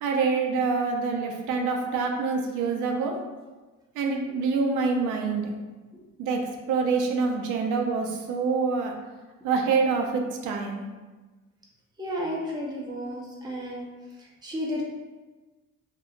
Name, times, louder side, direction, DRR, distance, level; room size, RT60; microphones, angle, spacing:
voice 1, 0.0-3.2 3.9-5.5 6.2-8.9 9.4-10.8, right 4 dB, 85° right, 2 dB, 0.5 m, -26 dB
voice 2, 12.0-13.9 14.2-14.8, equal, 15° right, -3 dB, 0.6 m, -33 dB
2.7 x 2.4 x 2.4 m, 1.2 s
cardioid pair, 90°, 30 cm